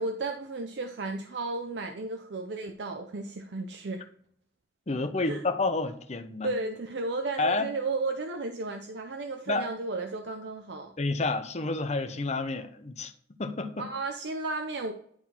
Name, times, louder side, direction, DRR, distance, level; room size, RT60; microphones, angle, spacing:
voice 1, 0.0-4.1 5.2-5.4 6.4-10.9 13.8-14.9, right 3 dB, 70° right, 0.6 m, -33 dB
voice 2, 4.9-6.5 7.4-7.7 9.5-9.6 11.0-13.1 13.4-13.8, left 3 dB, 40° left, 0.7 m, -29 dB
10.5 x 3.8 x 4.4 m
head